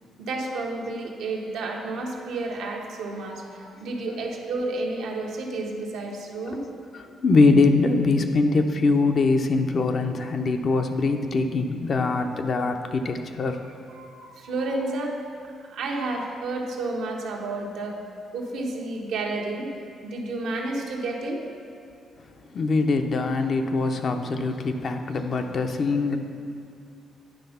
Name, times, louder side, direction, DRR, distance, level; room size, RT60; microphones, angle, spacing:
voice 1, 0.2-6.6 13.9-15.4 15.7-18.0 18.3-19.7 20.0-21.4, right 2 dB, 80° right, 0 dB, 1.0 m, -31 dB
voice 2, 6.9-13.6 22.5-26.2, left 3 dB, 50° left, 5 dB, 0.6 m, -23 dB
10.0 x 3.5 x 5.6 m, 2.4 s
cardioid pair, 90°, 0 cm